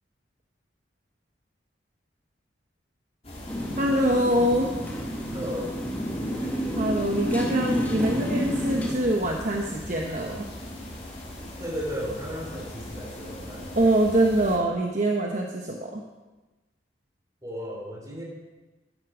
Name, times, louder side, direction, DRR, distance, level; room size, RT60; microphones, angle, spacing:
sound 1, 3.2-14.6, left 1 dB, 35° left, 3.2 m, -39 dB
Motorcycle, 3.5-9.0, equal, 10° left, 1.7 m, -30 dB
voice 1, 3.8-4.7 6.4-10.5 13.8-16.0, right 1 dB, 45° right, 0 dB, 1.0 m, -24 dB
voice 2, 5.3-5.8 11.6-13.7 17.4-18.2, equal, 20° right, -1 dB, 3.2 m, -34 dB
13.5 x 10.5 x 5.0 m, 1.2 s
head